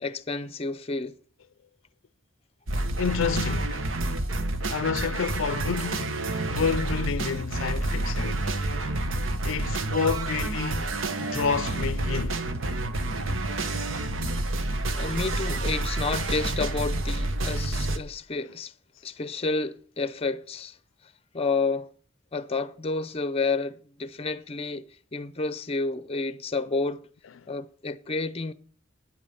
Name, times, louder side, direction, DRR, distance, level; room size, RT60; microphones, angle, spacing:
voice 1, 0.0-1.2 15.0-18.7 19.0-20.7 21.3-21.9 22.3-27.0 27.5-28.5, left 3 dB, 30° left, 0.6 m, -30 dB
sound 1, 2.7-18.0, right 2 dB, 85° right, 1.1 m, -29 dB
voice 2, 3.0-3.7 4.7-6.2 6.5-8.4 9.4-10.9 11.2-12.4, left 6 dB, 75° left, 0.4 m, -29 dB
9.7 x 8.6 x 6.9 m
head